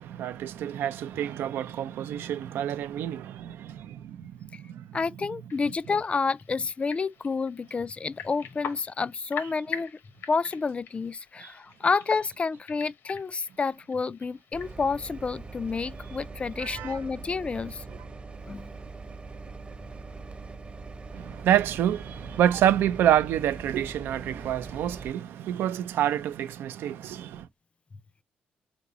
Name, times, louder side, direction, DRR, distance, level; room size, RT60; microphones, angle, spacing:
voice 1, 0.0-4.9 11.4-11.5 16.6-17.0 17.9-18.0 21.1-27.5, right 11 dB, 85° right, 0.4 m, -28 dB
voice 2, 4.9-10.0 10.3-17.8 18.4-18.7, left 4 dB, 35° left, 0.3 m, -29 dB
sound 1, 5.5-14.8, left 7 dB, 70° left, 0.9 m, -43 dB
sound 2, 14.5-25.1, right 3 dB, 30° right, 0.8 m, -42 dB
3.9 x 3.6 x 2.8 m
cardioid pair, 75°, 4 cm